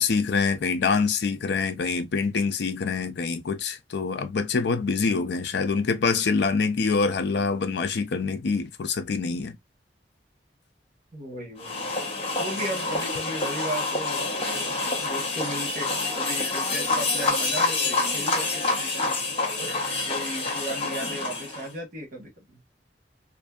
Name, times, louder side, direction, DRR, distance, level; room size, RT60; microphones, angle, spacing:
voice 1, 0.0-9.6, left 4 dB, 70° left, 0.5 m, -25 dB
voice 2, 11.1-11.9 12.4-14.4 15.0-19.2 20.0-22.6, equal, 50° right, 1.1 m, -36 dB
sound 1, 11.6-21.7, left 3 dB, 35° left, 0.9 m, -27 dB
2.6 x 2.5 x 2.3 m
head